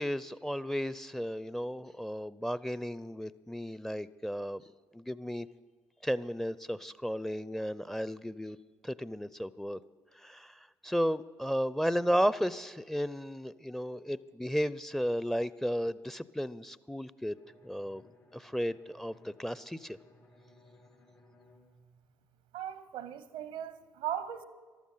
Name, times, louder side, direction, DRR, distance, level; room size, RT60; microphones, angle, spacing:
voice 1, 0.0-4.6 4.9-5.5 6.0-8.6 8.8-9.8 10.2-17.4 17.6-18.0 18.3-20.0, equal, 5° left, 0.5 m, -34 dB
Bowed string instrument, 17.3-22.9, left 1 dB, 85° left, 4.5 m, -62 dB
voice 2, 22.5-24.4, right 10 dB, 85° right, 0.8 m, -38 dB
14.0 x 12.5 x 5.6 m
hypercardioid pair, 50°, 9 cm